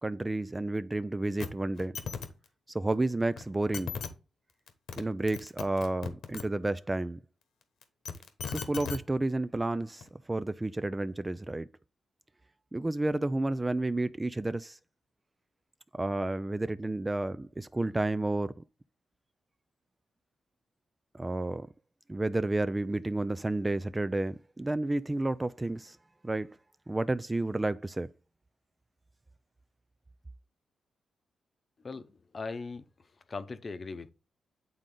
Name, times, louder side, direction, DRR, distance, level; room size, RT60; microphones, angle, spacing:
voice 1, 0.0-1.9 2.7-3.9 5.0-7.2 8.5-11.7 12.7-14.8 15.9-18.5 21.1-21.7 22.1-26.0 26.2-26.6 26.9-28.1, right 2 dB, 20° right, 0.3 m, -31 dB
sound 1, 1.4-1.5 1.8-2.3 3.4-3.5 3.7-4.1 4.7-5.0 5.3-6.4 7.8-9.0 10.0-10.1, left 6 dB, 85° left, 1.2 m, -37 dB
voice 2, 32.3-32.8 33.3-34.1, left 4 dB, 40° left, 0.8 m, -38 dB
9.0 x 3.8 x 3.8 m
cardioid pair, 85°, 0 cm